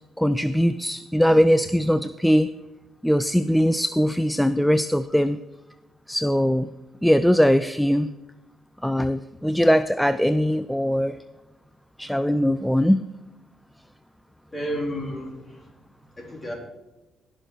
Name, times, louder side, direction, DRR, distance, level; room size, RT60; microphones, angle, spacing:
voice 1, 0.2-2.5 3.0-5.4 6.1-6.7 7.0-8.1 8.8-11.2 12.0-13.0, equal, ahead, 13 dB, 0.4 m, -21 dB
voice 2, 14.5-15.7 16.2-16.5, equal, 20° left, 0 dB, 3.6 m, -31 dB
17.0 x 6.4 x 4.6 m, 1.0 s
cardioid pair, 90°, 0 cm